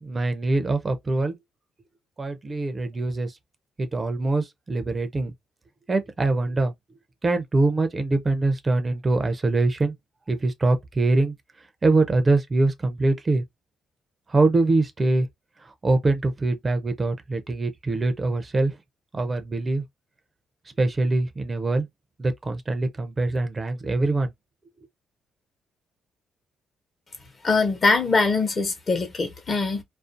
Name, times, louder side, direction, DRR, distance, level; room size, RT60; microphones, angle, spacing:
voice 1, 0.0-1.4 2.2-3.3 3.8-5.3 5.9-6.7 7.2-9.9 10.3-11.3 11.8-13.4 14.3-15.3 15.8-18.7 19.1-19.8 20.8-21.9 22.2-24.3, right 2 dB, 30° right, 0.4 m, -23 dB
voice 2, 27.4-29.8, left 3 dB, 40° left, 0.8 m, -22 dB
2.4 x 2.1 x 2.5 m
cardioid pair, 90°, 0 cm